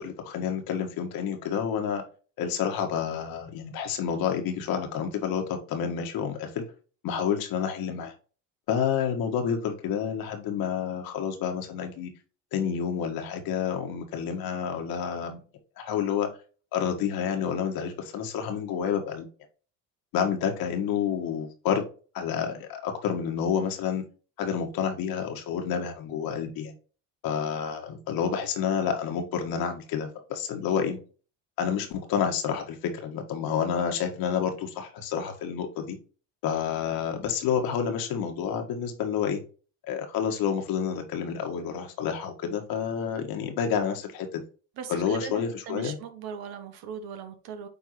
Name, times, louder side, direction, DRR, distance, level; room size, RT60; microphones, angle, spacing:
voice 1, 0.0-2.0 2.4-6.7 7.0-8.1 8.7-12.1 12.5-15.4 15.8-16.3 16.7-19.3 20.1-21.9 22.1-24.0 24.4-26.7 27.2-31.0 31.6-36.0 36.4-39.4 39.8-44.4 44.9-46.0, left 7 dB, 65° left, 1.8 m, -29 dB
voice 2, 44.8-47.7, right 7 dB, 65° right, 1.4 m, -39 dB
9.3 x 3.5 x 3.1 m
hypercardioid pair, 70°, 39 cm